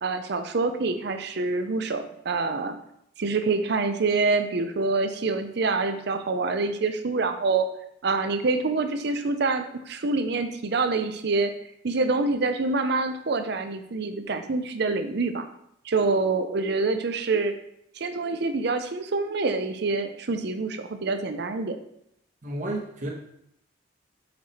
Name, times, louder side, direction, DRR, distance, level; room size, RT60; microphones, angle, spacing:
voice 1, 0.0-2.8 3.2-7.7 8.0-11.5 11.8-15.5 15.8-17.5 18.0-21.8, right 3 dB, 65° right, 8 dB, 0.6 m, -26 dB
voice 2, 22.4-23.1, right 1 dB, 45° right, -2 dB, 1.3 m, -31 dB
6.0 x 4.8 x 4.2 m, 0.74 s
head